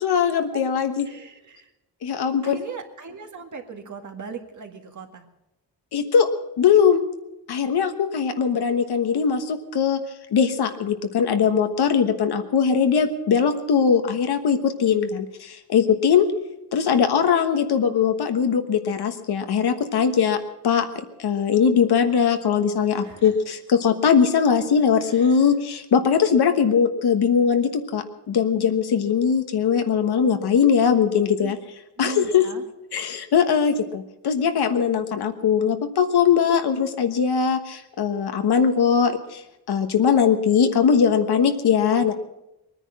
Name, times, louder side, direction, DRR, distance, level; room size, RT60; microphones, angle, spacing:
voice 1, 0.0-1.1 2.0-2.6 5.9-6.3 6.6-7.0 7.5-10.0 10.3-16.3 16.7-31.6 32.0-32.5 32.9-39.4 39.7-42.1, left 7 dB, 70° left, 7 dB, 1.4 m, -20 dB
voice 2, 1.1-1.7 2.4-5.3 23.0-23.3 25.0-25.4 31.4-31.5 32.0-32.6, right 5 dB, 45° right, 4 dB, 1.9 m, -38 dB
21.0 x 10.0 x 6.2 m, 0.93 s
wide cardioid pair, 125°, 40 cm